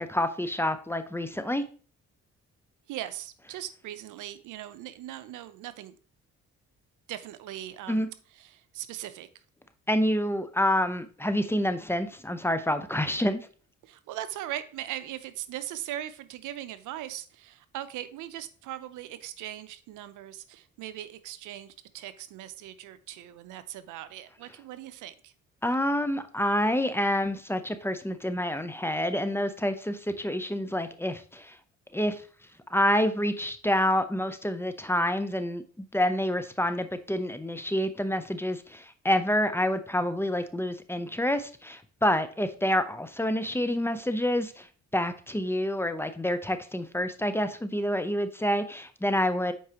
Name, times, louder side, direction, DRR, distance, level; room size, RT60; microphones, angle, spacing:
voice 1, 0.0-1.7 7.9-8.1 9.9-13.5 25.6-31.6 31.9-32.3 32.7-49.5, left 1 dB, 10° left, 10 dB, 0.6 m, -28 dB
voice 2, 2.9-5.9 7.1-9.3 13.8-25.3, right 12 dB, 90° right, 13 dB, 0.6 m, -39 dB
8.2 x 4.7 x 2.9 m, 0.40 s
cardioid pair, 90°, 30 cm